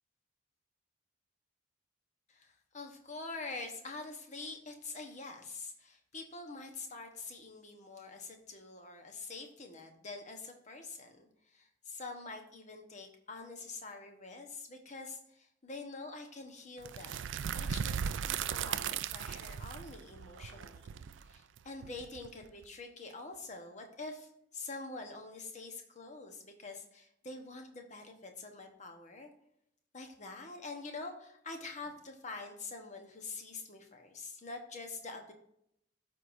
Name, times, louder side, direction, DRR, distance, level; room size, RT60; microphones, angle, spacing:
voice 1, 2.3-17.3 17.6-18.0 18.3-21.0 21.2-29.3 29.9-35.3, left 3 dB, 40° left, 4 dB, 1.1 m, -46 dB
sound 1, 16.8-22.6, right 8 dB, 75° right, 0.4 m, -37 dB
13.5 x 4.7 x 2.7 m, 0.75 s
head